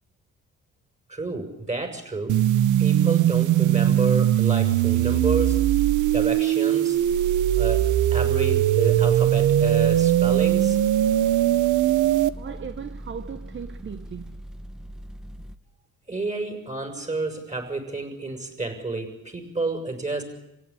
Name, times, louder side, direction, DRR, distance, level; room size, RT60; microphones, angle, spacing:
voice 1, 1.1-2.4 2.8-5.7 6.1-7.0 7.6-10.8 16.1-20.2, right 3 dB, 25° right, 6.4 m, -30 dB
sound 1, 2.3-12.3, right 12 dB, 80° right, 0.9 m, -20 dB
sound 2, 8.9-15.6, equal, ahead, 1.1 m, -40 dB
voice 2, 12.4-14.4, right 7 dB, 40° right, 1.0 m, -37 dB
27.0 x 16.5 x 9.9 m
cardioid pair, 90°, 30 cm